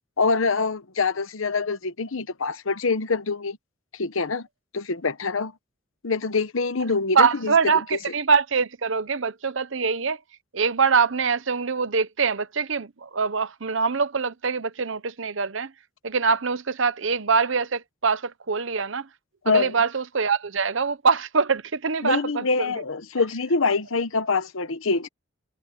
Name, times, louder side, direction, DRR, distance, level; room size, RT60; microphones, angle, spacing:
voice 1, 0.2-3.6 3.9-4.5 4.7-5.5 6.0-7.5 7.9-8.0 19.4-19.8 22.0-25.1, left 4 dB, 80° left, 1.0 m, -25 dB
voice 2, 7.1-10.2 10.5-15.7 16.0-19.1 19.5-22.8, right 5 dB, 70° right, 0.9 m, -24 dB
head